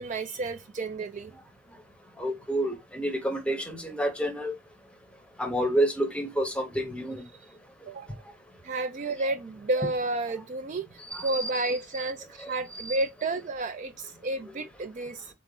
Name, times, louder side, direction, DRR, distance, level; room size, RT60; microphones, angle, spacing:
voice 1, 0.0-1.3 7.9-8.2 8.6-15.3, right 2 dB, 35° right, 0.3 m, -31 dB
voice 2, 2.2-4.5 5.4-7.2 11.1-11.6 12.8-13.0, right 1 dB, 5° left, 0.7 m, -29 dB
3.8 x 3.6 x 3.8 m
head